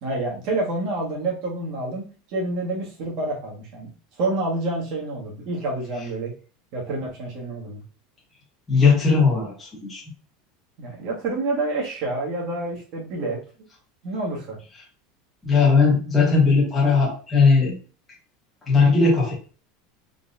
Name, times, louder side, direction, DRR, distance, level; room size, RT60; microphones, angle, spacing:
voice 1, 0.0-3.9 4.2-6.3 6.7-7.8 10.8-13.4 14.0-14.6, right 2 dB, 45° right, -2 dB, 1.4 m, -28 dB
voice 2, 8.7-10.0 15.4-17.7 18.7-19.3, left 4 dB, 10° left, -5 dB, 1.2 m, -18 dB
3.8 x 3.0 x 2.5 m, 0.37 s
supercardioid pair, 170°, 0 cm